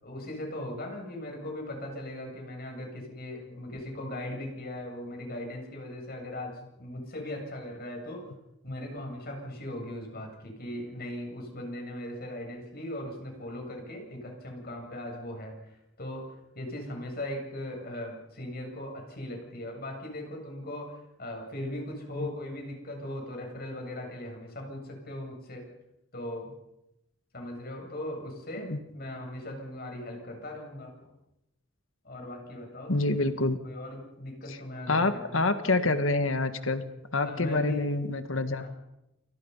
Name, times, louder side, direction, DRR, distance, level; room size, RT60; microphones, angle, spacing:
voice 1, 0.0-8.3 8.6-15.6 16.0-25.7 26.1-26.5 27.3-31.1 32.0-33.1 33.6-35.5 37.2-37.9 38.6-38.7, left 1 dB, 45° left, 2 dB, 8.0 m, -39 dB
voice 2, 32.9-33.6 34.5-34.6 34.9-36.8 37.1-38.7, left 2 dB, 65° left, 9 dB, 1.8 m, -27 dB
28.5 x 28.5 x 5.7 m, 0.89 s
head